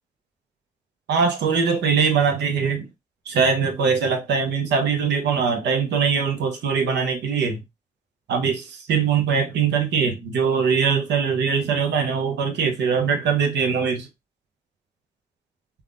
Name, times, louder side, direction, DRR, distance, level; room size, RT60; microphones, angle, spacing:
voice 1, 1.1-2.9 3.3-7.6 8.3-14.1, right 6 dB, 70° right, 0.8 m, -22 dB
3.4 x 2.3 x 2.4 m
hypercardioid pair, 40°, 19 cm